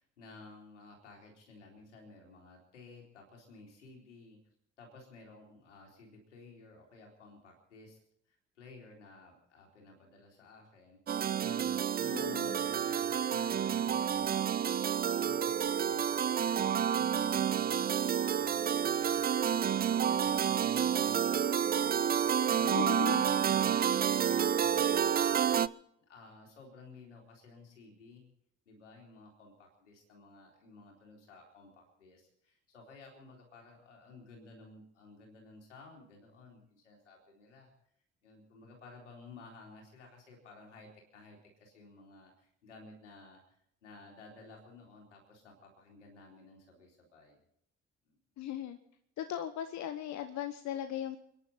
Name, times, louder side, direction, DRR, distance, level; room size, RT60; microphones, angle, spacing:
voice 1, 0.0-4.4 4.8-8.0 8.3-17.8 18.3-25.6 26.1-28.3 28.7-37.7 38.2-47.4 48.1-48.2, left 3 dB, 80° left, 0 dB, 4.0 m, -55 dB
sound 1, 11.1-25.7, right 8 dB, 25° right, 0.5 m, -29 dB
voice 2, 12.1-12.6 22.6-23.2 48.4-48.8 49.2-51.2, left 11 dB, 50° left, 10 dB, 1.1 m, -38 dB
29.5 x 10.5 x 4.3 m, 0.73 s
figure-of-eight pair, 45°, 35 cm